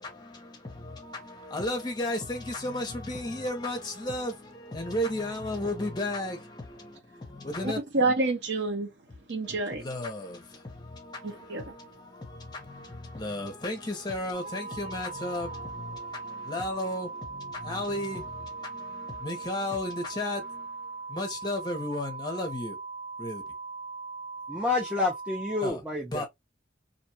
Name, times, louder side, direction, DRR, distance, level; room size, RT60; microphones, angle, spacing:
voice 1, 0.0-7.8 9.4-22.8 23.2-23.5 25.6-25.8 26.1-26.3, left 1 dB, 25° left, 0.7 m, -34 dB
voice 2, 7.6-8.9 9.3-9.8 11.2-11.6, right 3 dB, 65° right, 0.7 m, -28 dB
sound 1, 14.3-25.7, right 4 dB, 85° right, 0.9 m, -40 dB
voice 3, 24.5-26.3, left 3 dB, 5° right, 0.5 m, -29 dB
2.6 x 2.2 x 2.7 m
head